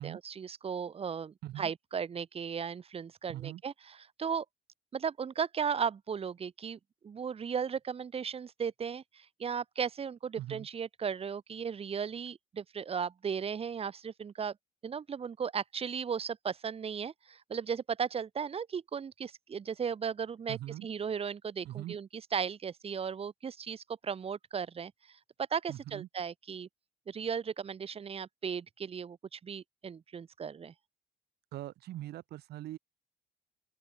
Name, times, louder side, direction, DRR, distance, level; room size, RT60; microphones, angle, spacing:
voice 1, 0.0-4.5 4.9-14.6 14.8-25.2 25.5-26.7 27.1-30.7, right 7 dB, 35° right, 2.3 m, -36 dB
voice 2, 3.3-3.6 10.4-10.7 20.5-20.9 21.6-22.0 25.7-26.1 31.5-32.8, right 14 dB, 75° right, 6.3 m, -41 dB
open air
cardioid pair, 110°, 17 cm